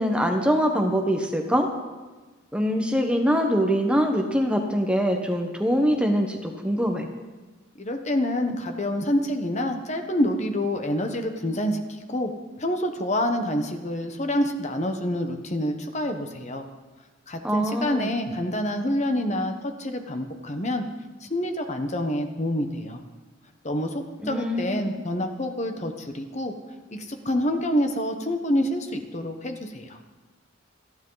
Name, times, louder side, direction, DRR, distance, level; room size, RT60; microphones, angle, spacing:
voice 1, 0.0-1.7 2.5-7.1 17.4-18.1 24.2-24.9, equal, 5° right, 3 dB, 1.1 m, -23 dB
voice 2, 7.8-12.3 12.6-16.7 17.3-20.8 21.2-23.0 23.6-26.5 26.9-30.0, left 1 dB, 35° left, 6 dB, 1.2 m, -27 dB
27.0 x 10.5 x 4.0 m, 1.3 s
head